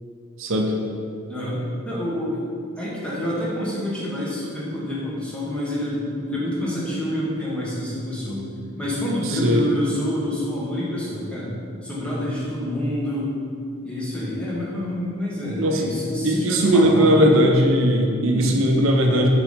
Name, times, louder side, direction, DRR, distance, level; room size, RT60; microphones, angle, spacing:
voice 1, 0.4-0.7 9.3-9.6 15.6-15.8 16.2-19.3, equal, 70° right, 2 dB, 0.7 m, -18 dB
voice 2, 1.3-2.4 2.8-8.4 8.8-13.3 13.8-17.3 18.3-18.6, left 1 dB, 5° left, -8 dB, 1.3 m, -27 dB
5.9 x 4.0 x 5.1 m, 2.5 s
head